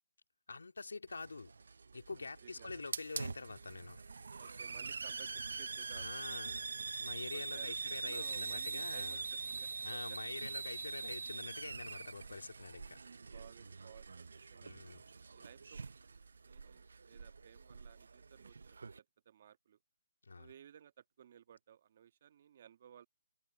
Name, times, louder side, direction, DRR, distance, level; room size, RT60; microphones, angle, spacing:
voice 1, 0.5-1.5 1.9-4.0 5.9-6.6 7.0-9.3 9.8-13.0 14.6-15.0 20.2-20.5, left 4 dB, 85° left, 3.0 m, -46 dB
Hiss, 1.1-19.0, right 4 dB, 75° right, 0.5 m, -44 dB
voice 2, 2.2-2.8 4.4-6.2 7.3-7.7 8.0-10.4 13.3-14.8 15.3-19.8 20.4-23.1, right 9 dB, 45° right, 1.5 m, -58 dB
hypercardioid pair, 155°, 0 cm